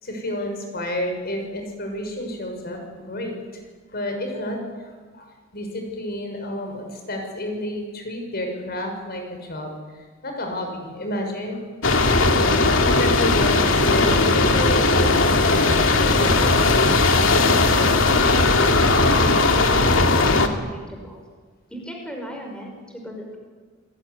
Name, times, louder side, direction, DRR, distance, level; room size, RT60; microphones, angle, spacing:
voice 1, 0.0-3.6 3.9-11.6 12.2-12.4 12.9-16.5, left 1 dB, 50° left, 3 dB, 6.6 m, -31 dB
sound 1, 11.8-20.5, left 3 dB, 80° left, 2.4 m, -18 dB
voice 2, 19.1-21.2 21.7-23.4, equal, 5° left, 1 dB, 5.5 m, -37 dB
28.5 x 20.5 x 9.9 m, 1.5 s
head